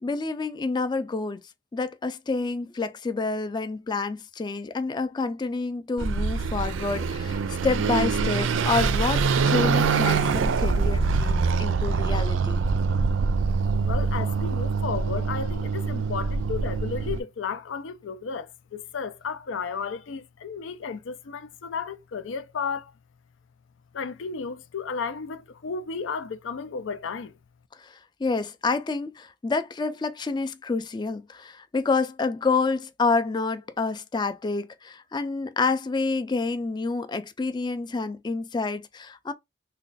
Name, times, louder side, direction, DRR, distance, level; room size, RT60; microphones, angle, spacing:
voice 1, 0.0-1.4 1.7-12.6 27.8-39.3, left 3 dB, 25° left, 0.3 m, -28 dB
Car passing by / Accelerating revving vroom, 6.0-17.2, right 4 dB, 90° right, 0.4 m, -24 dB
voice 2, 13.8-22.9 23.9-27.3, left 5 dB, 85° left, 0.5 m, -33 dB
3.2 x 2.2 x 3.9 m
head